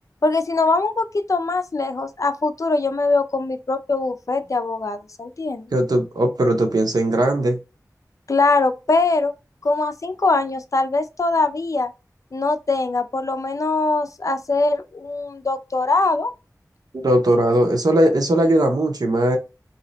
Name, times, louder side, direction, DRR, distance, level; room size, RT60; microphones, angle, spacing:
voice 1, 0.2-5.7 8.3-9.3 9.6-11.9 12.3-16.3, left 3 dB, 55° left, 0.5 m, -22 dB
voice 2, 5.7-7.6 16.9-19.4, right 1 dB, 80° right, 0.9 m, -19 dB
3.1 x 2.8 x 4.0 m
wide cardioid pair, 65°, 7 cm